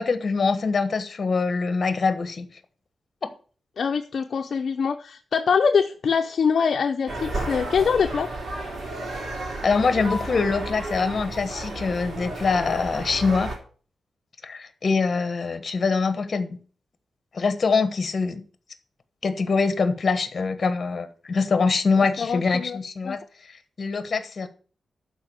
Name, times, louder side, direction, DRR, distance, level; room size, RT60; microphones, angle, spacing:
voice 1, 0.0-2.5 9.6-13.5 14.4-16.6 17.3-18.4 19.2-24.5, left 4 dB, 40° left, 1.2 m, -24 dB
voice 2, 3.8-8.3 22.0-22.8 23.0-23.2, left 6 dB, 55° left, 0.6 m, -24 dB
sound 1, 7.1-13.6, right 1 dB, 50° right, 3.6 m, -32 dB
12.0 x 4.9 x 7.6 m
wide cardioid pair, 165°, 0 cm